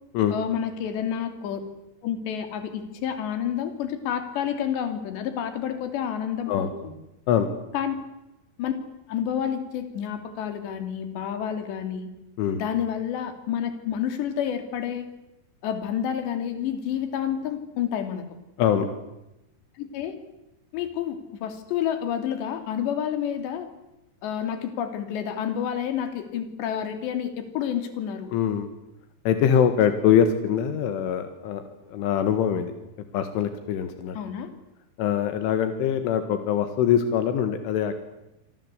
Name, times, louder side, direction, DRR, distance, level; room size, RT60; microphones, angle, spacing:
voice 1, 0.3-1.6 2.0-6.9 7.7-7.9 8.6-8.7 9.1-12.1 12.5-15.1 15.6-18.2 19.8-20.2 20.7-23.7 24.2-28.3 34.2-34.5, left 9 dB, 65° left, 8 dB, 4.7 m, -29 dB
voice 2, 28.3-28.7 29.3-31.6 31.9-32.7 33.1-34.2 35.0-37.9, left 8 dB, 85° left, 8 dB, 4.2 m, -23 dB
27.0 x 24.5 x 8.3 m, 0.93 s
omnidirectional pair, 5.5 m